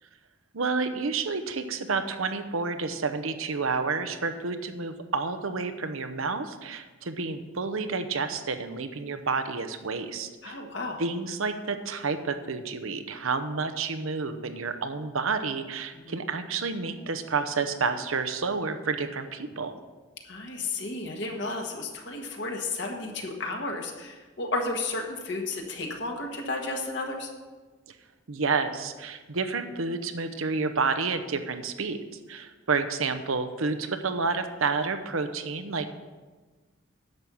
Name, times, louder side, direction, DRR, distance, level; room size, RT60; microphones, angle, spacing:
voice 1, 0.5-10.6 11.0-19.7 28.3-32.0 32.3-35.9, right 4 dB, 90° right, 9 dB, 0.9 m, -30 dB
voice 2, 10.4-11.0 16.0-16.1 20.3-27.3, left 2 dB, 60° left, 1 dB, 1.4 m, -33 dB
10.5 x 7.1 x 6.2 m, 1.3 s
head